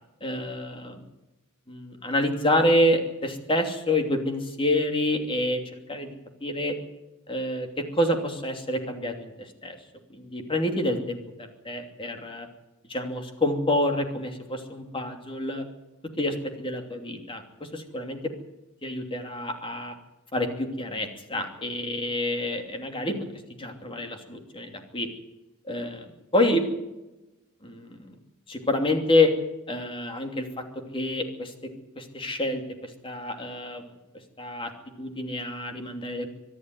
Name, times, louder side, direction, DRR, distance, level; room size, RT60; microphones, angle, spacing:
voice 1, 0.2-1.0 1.7-5.6 5.9-6.1 6.4-6.8 7.3-9.8 10.1-12.5 12.9-15.7 16.2-18.2 18.8-20.0 20.3-23.2 23.6-25.1 25.7-26.6 27.6-28.1 28.5-29.3 29.7-30.6 30.9-31.5 32.0-33.8 34.4-34.7 35.0-36.3, left 1 dB, 25° left, 5 dB, 2.9 m, -27 dB
24.5 x 11.5 x 9.6 m, 1.0 s
head